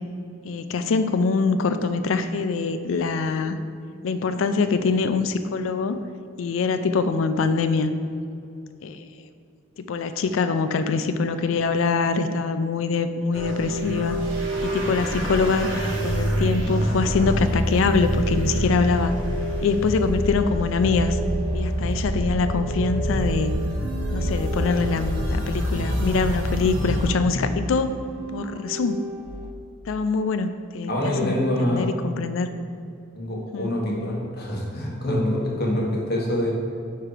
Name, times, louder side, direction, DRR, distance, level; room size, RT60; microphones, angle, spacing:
voice 1, 0.4-3.6 4.0-6.0 6.4-7.9 8.8-9.0 9.9-14.2 14.6-15.7 16.0-19.1 19.6-21.2 21.5-23.5 24.1-27.9 28.3-29.0 29.9-32.5 33.5-33.7, left 4 dB, 75° left, 10 dB, 0.4 m, -24 dB
sound 1, 13.3-27.1, equal, 75° right, 1.2 m, -26 dB
sound 2, 20.9-29.5, right 1 dB, 35° right, 0.4 m, -36 dB
voice 2, 30.9-31.9 33.1-36.5, left 1 dB, 55° left, -2 dB, 1.2 m, -25 dB
4.9 x 4.6 x 4.9 m, 2.5 s
head